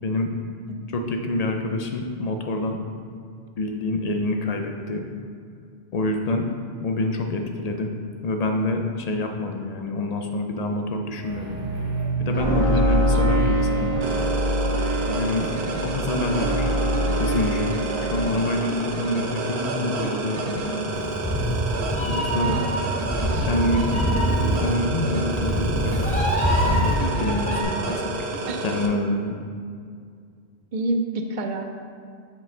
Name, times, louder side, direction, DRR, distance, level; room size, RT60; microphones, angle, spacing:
voice 1, 0.9-2.8 3.6-5.1 5.9-6.5 6.8-7.9 8.2-11.6 12.2-13.9 15.1-15.5 15.8-21.0 22.0-22.5 23.4-23.8 24.6-26.2 26.6-28.1 28.6-29.4, left 2 dB, 55° left, 4 dB, 0.4 m, -26 dB
sound 1, 11.2-18.2, equal, 35° right, 1.5 m, -24 dB
sound 2, 14.0-28.9, right 3 dB, 75° right, 0.9 m, -30 dB
voice 2, 15.1-15.4 22.4-22.7 23.2-23.5 28.5-28.6 30.7-31.6, right 2 dB, 55° right, 5 dB, 0.6 m, -29 dB
Meow, 20.9-27.6, equal, 10° left, 0.7 m, -24 dB
5.5 x 5.2 x 3.7 m, 2.2 s
omnidirectional pair, 1.1 m